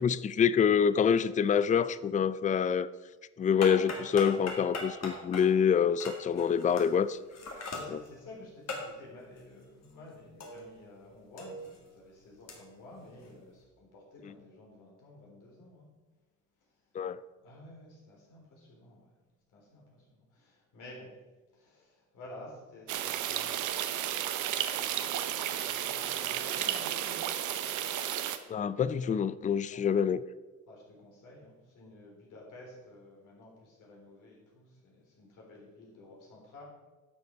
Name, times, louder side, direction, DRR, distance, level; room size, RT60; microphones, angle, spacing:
voice 1, 0.0-2.9 3.4-7.2 7.9-8.0 16.9-17.2 28.5-30.2, left 7 dB, 25° left, 0.4 m, -26 dB
sound 1, 3.4-11.0 11.2-13.6, left 2 dB, 60° left, 2.1 m, -42 dB
voice 2, 7.7-15.9 16.6-16.7 17.4-19.2 19.5-21.1 21.5-27.1 27.4-27.6 29.6-29.9 30.7-36.6, left 2 dB, 85° left, 3.9 m, -52 dB
sound 2, 22.9-28.4, right 11 dB, 80° right, 0.8 m, -33 dB
11.5 x 6.8 x 4.6 m
cardioid pair, 90°, 30 cm